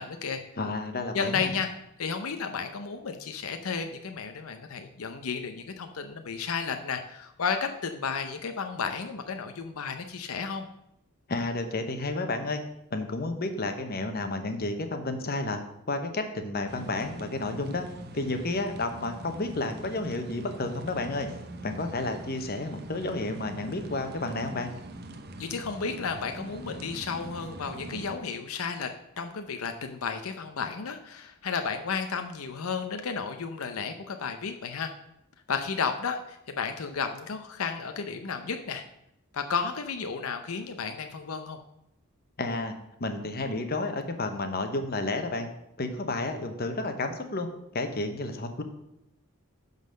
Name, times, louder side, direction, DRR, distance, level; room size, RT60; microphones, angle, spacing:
voice 1, 0.0-0.4 1.1-1.7 2.0-10.7 25.4-28.9 29.2-34.9 35.5-38.8 39.3-41.6, left 5 dB, 80° left, 6 dB, 0.7 m, -33 dB
voice 2, 0.6-1.5 11.3-12.6 12.9-15.6 15.9-17.8 18.1-21.3 21.6-24.7 42.4-42.7 43.0-45.5 45.8-47.5 47.7-48.6, left 2 dB, 45° left, 6 dB, 1.0 m, -31 dB
sound 1, 16.7-28.2, right 1 dB, 45° right, 0.8 m, -43 dB
10.5 x 4.1 x 6.4 m, 0.81 s
head